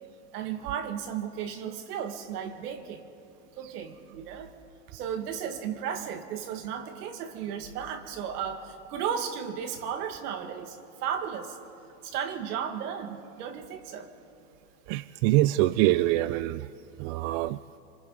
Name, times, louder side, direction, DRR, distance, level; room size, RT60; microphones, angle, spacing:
voice 1, 0.3-3.0 3.6-4.5 4.9-11.6 12.0-14.1, right 8 dB, 75° right, 5 dB, 2.1 m, -34 dB
voice 2, 14.9-16.7 17.0-17.6, right 16 dB, 50° right, 15 dB, 0.5 m, -24 dB
26.5 x 24.5 x 4.0 m, 2.8 s
supercardioid pair, 125°, 46 cm